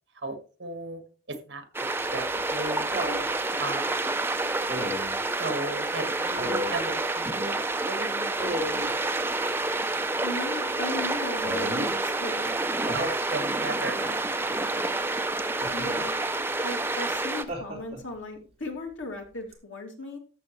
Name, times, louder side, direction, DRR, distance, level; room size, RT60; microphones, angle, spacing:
voice 1, 0.1-1.0 1.3-2.9 3.6-4.1 5.4-7.6 7.9-8.8 12.9-13.0 13.3-15.0, right 2 dB, 65° right, 7 dB, 1.7 m, -36 dB
sound 1, 1.7-17.4, right 2 dB, 10° right, 0.6 m, -28 dB
Laughter, 2.0-3.3 4.7-5.2 6.3-6.8 8.4-8.9 11.4-11.9 12.9-13.2 15.6-16.1 17.5-18.1 19.5-19.6, equal, 30° right, 2.5 m, -33 dB
voice 2, 10.2-12.6 15.7-16.1 16.6-20.2, left 2 dB, 85° left, 2 dB, 2.6 m, -37 dB
13.5 x 6.9 x 3.1 m, 0.37 s
head